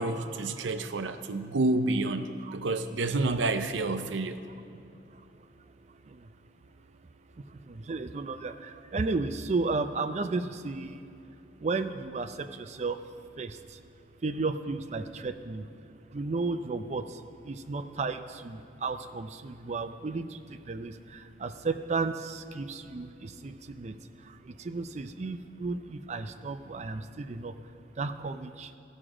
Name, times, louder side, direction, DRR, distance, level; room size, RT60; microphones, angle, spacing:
voice 1, 0.0-2.3 2.5-4.4, right 2 dB, 90° right, 10 dB, 0.6 m, -29 dB
voice 2, 4.5-6.3 6.6-7.1 7.4-13.8 14.2-28.7, right 3 dB, 35° right, 9 dB, 0.4 m, -34 dB
15.0 x 6.2 x 4.9 m, 2.7 s
head